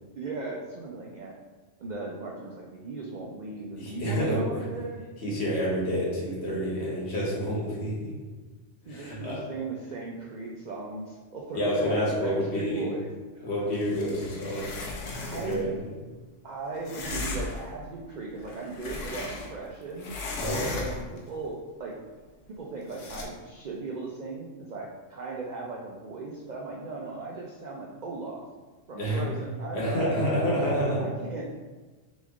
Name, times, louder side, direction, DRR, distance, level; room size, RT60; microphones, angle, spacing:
voice 1, 0.2-1.4 1.8-5.0 8.9-13.1 13.4-13.7 15.2-15.7 16.4-20.1 20.7-21.5 21.8-21.9 22.5-28.4 28.9-30.7 31.0-31.6, right 3 dB, 65° right, -2 dB, 0.4 m, -37 dB
voice 2, 3.8-4.6 5.2-8.1 8.9-9.4 11.5-12.9 13.4-14.7 15.2-15.7 20.4-20.8 29.0-29.2 29.7-31.0, equal, 60° left, -5 dB, 1.3 m, -28 dB
sound 1, 13.7-15.7 16.8-17.7 18.3-19.7 20.0-21.2 22.9-23.2, left 3 dB, 75° left, 1.0 m, -36 dB
3.5 x 3.1 x 3.5 m, 1.3 s
omnidirectional pair, 1.3 m